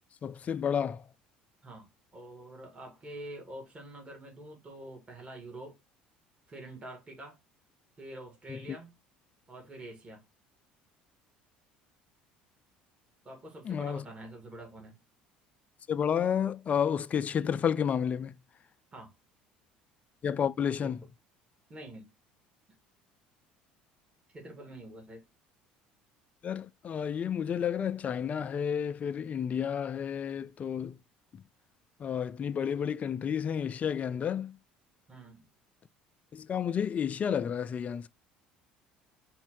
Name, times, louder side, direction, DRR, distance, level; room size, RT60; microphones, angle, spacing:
voice 1, 0.2-1.1 8.5-8.6 13.6-14.0 15.9-18.4 20.2-21.0 26.4-31.0 32.0-34.6 36.3-38.1, left 8 dB, 40° left, 0.4 m, -31 dB
voice 2, 1.6-5.8 6.5-7.4 8.0-8.9 9.5-10.2 13.2-15.0 18.9-19.1 20.8-21.0 21.7-22.1 24.3-25.2 35.1-35.5, right 1 dB, 30° right, 2.0 m, -46 dB
4.1 x 2.6 x 4.5 m
hypercardioid pair, 75°, 4 cm